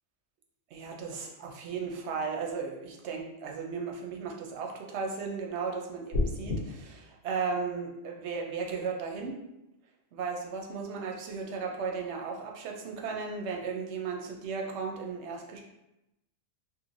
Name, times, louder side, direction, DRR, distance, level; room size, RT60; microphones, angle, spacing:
voice 1, 0.7-9.4 10.1-15.6, right 5 dB, 65° right, 1 dB, 0.8 m, -35 dB
sound 1, 6.1-6.6, left 2 dB, 75° left, 1.0 m, -28 dB
3.1 x 2.5 x 2.5 m, 0.91 s
omnidirectional pair, 1.4 m